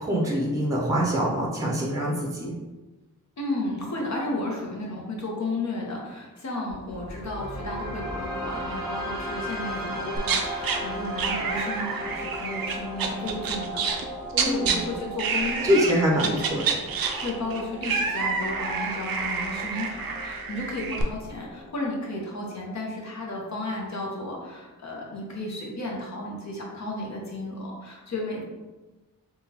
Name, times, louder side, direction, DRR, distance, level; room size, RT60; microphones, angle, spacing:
voice 1, 0.0-2.5 14.3-14.9 15.6-16.7, equal, 10° right, -2 dB, 0.7 m, -25 dB
voice 2, 3.4-13.8 14.4-15.8 16.1-16.4 17.2-28.4, left 2 dB, 50° left, -2 dB, 0.9 m, -33 dB
sound 1, 6.7-22.7, equal, 10° left, 1.4 m, -37 dB
sound 2, 10.2-10.8 11.2-14.1 14.3-14.8 15.2-15.9 16.2-21.0, right 5 dB, 80° right, 0.5 m, -28 dB
3.6 x 2.3 x 2.8 m, 1.2 s
cardioid pair, 65°, 35 cm